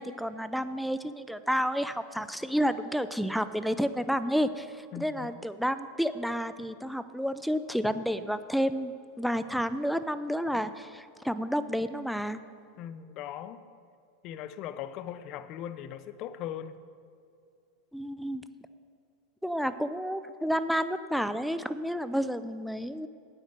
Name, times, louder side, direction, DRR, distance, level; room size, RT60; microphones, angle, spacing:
voice 1, 0.0-12.4 17.9-18.4 19.4-23.1, equal, ahead, 12 dB, 0.5 m, -30 dB
voice 2, 4.9-5.3 12.8-13.6 14.2-16.8, left 10 dB, 50° left, 13 dB, 0.6 m, -39 dB
9.3 x 8.2 x 6.6 m, 2.5 s
hypercardioid pair, 100°, 0 cm